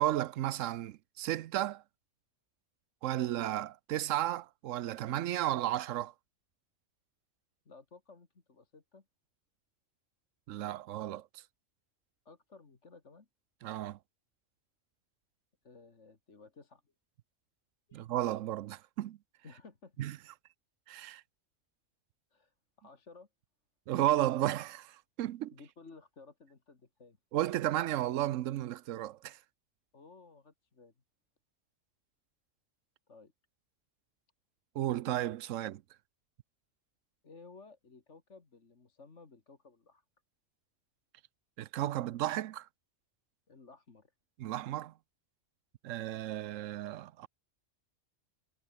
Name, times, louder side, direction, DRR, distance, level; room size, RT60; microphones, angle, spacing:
voice 1, 0.0-1.8 3.0-6.1 10.5-11.4 13.6-14.0 17.9-19.2 20.0-20.2 20.9-21.2 23.9-25.5 27.3-29.4 34.7-35.8 41.6-42.7 44.4-44.9 45.8-47.3, right 13 dB, 90° right, 1.0 m, -33 dB
voice 2, 7.7-9.0 12.3-13.3 15.6-16.8 17.9-18.1 19.4-20.0 22.3-23.3 25.5-27.2 29.9-30.9 33.1-33.3 37.2-40.0 43.5-44.1, left 4 dB, 70° left, 2.6 m, -56 dB
omnidirectional pair, 1.3 m